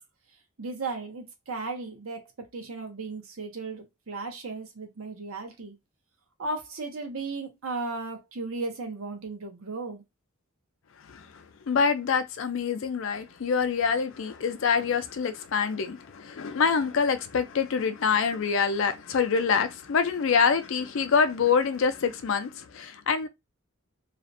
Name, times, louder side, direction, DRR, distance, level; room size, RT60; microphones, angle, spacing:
voice 1, 0.6-5.7 6.4-10.0, right 3 dB, 75° right, 0.7 m, -35 dB
voice 2, 11.0-23.3, left 6 dB, 65° left, 0.4 m, -26 dB
2.4 x 2.1 x 2.5 m
head